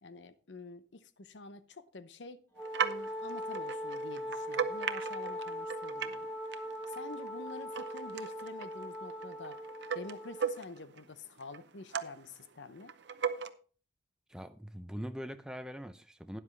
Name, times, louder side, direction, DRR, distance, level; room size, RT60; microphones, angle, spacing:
voice 1, 0.0-2.4 2.8-6.3 6.9-9.6 9.9-12.9, left 3 dB, 80° left, 0.8 m, -48 dB
Wind instrument woodwind instrument, 2.5-10.6, equal, 15° left, 3.3 m, -40 dB
sound 1, 2.6-6.3 6.5-11.0 11.4-12.3 12.8-13.5, right 7 dB, 70° right, 0.7 m, -38 dB
voice 2, 14.3-16.4, equal, 5° right, 0.5 m, -42 dB
12.5 x 10.0 x 3.2 m
head